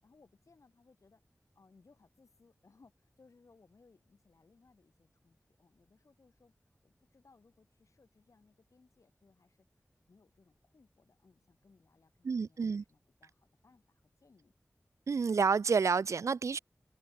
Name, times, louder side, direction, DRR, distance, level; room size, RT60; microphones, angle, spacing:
voice 1, 0.0-1.2 1.5-9.6 10.1-14.5, left 4 dB, 80° left, 6.6 m, -66 dB
voice 2, 12.2-12.8 15.1-16.6, right 5 dB, 70° right, 0.3 m, -29 dB
open air
wide cardioid pair, 80°, 5 cm